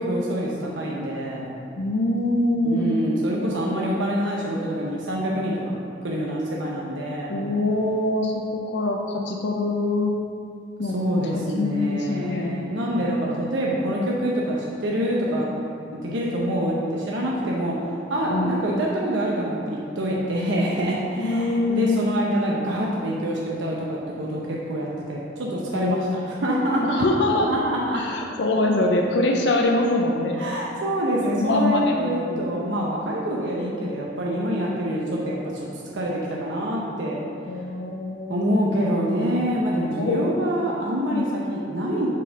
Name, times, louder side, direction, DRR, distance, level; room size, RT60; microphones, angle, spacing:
voice 1, 0.0-1.5 2.6-5.7 6.0-7.3 10.9-15.5 15.9-17.7 18.1-27.0 27.5-28.0 30.4-35.7 35.9-37.2 38.3-42.1, equal, 90° right, -4 dB, 0.7 m, -26 dB
voice 2, 1.8-2.9 7.3-10.1 10.8-10.9 11.2-12.6 18.3-18.6 21.2-22.0 25.7-26.1 26.8-27.5 27.9-30.5 31.2-32.5 37.5-38.5 40.0-40.3 41.1-41.3, left 2 dB, 70° left, 1 dB, 0.5 m, -24 dB
5.2 x 4.2 x 5.1 m, 2.5 s
head